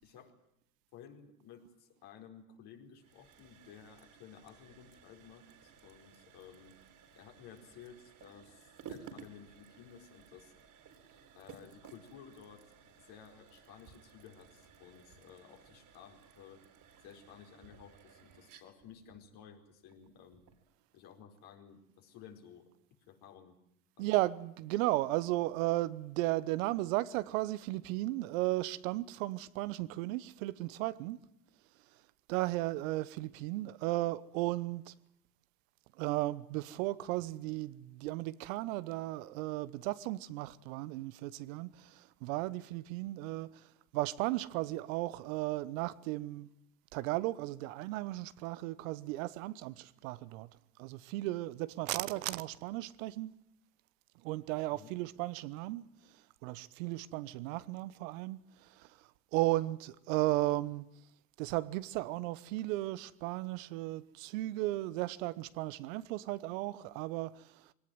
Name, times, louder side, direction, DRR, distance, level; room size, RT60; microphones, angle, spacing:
voice 1, 0.0-0.3 0.9-6.8 7.2-10.5 11.3-12.7 13.0-16.6 17.0-20.4 20.9-22.7 23.1-23.6 24.0-24.1 54.7-55.0, left 8 dB, 60° left, 4.8 m, -55 dB
sound 1, 3.0-20.7, right 7 dB, 50° right, 4.0 m, -57 dB
voice 2, 24.0-31.2 32.3-34.9 36.0-43.6 43.9-46.5 46.9-50.5 50.8-53.3 54.2-55.8 56.4-58.9 59.3-60.8 61.4-67.5, right 18 dB, 70° right, 1.1 m, -35 dB
22.5 x 18.0 x 9.3 m
hypercardioid pair, 70°, 42 cm